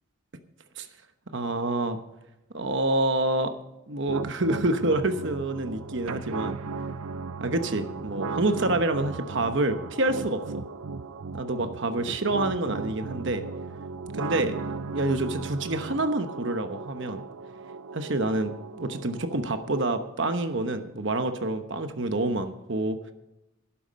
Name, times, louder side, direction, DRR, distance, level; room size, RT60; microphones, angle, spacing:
voice 1, 1.3-2.0 2.5-3.5 3.9-6.6 7.4-10.6 11.3-13.4 14.1-17.2 17.9-23.0, right 2 dB, 55° right, 8 dB, 1.0 m, -27 dB
sound 1, 4.1-20.1, right 4 dB, 90° right, 0.6 m, -37 dB
12.5 x 11.5 x 5.2 m, 0.93 s
head